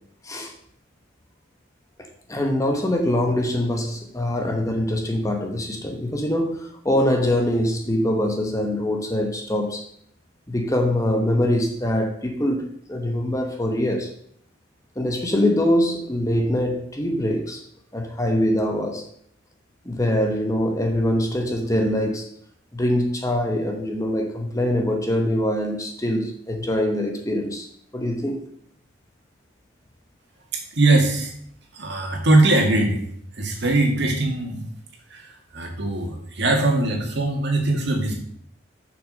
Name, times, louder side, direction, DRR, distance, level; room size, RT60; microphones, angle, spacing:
voice 1, 2.3-9.8 10.5-14.1 15.0-17.6 17.9-19.0 19.8-22.3 22.7-27.7 27.9-28.4, left 1 dB, 15° left, 3 dB, 1.0 m, -23 dB
voice 2, 30.7-31.3 31.7-33.0 33.4-34.6 35.1-38.1, right 2 dB, 55° right, 1 dB, 2.2 m, -21 dB
7.0 x 6.3 x 6.4 m, 0.67 s
head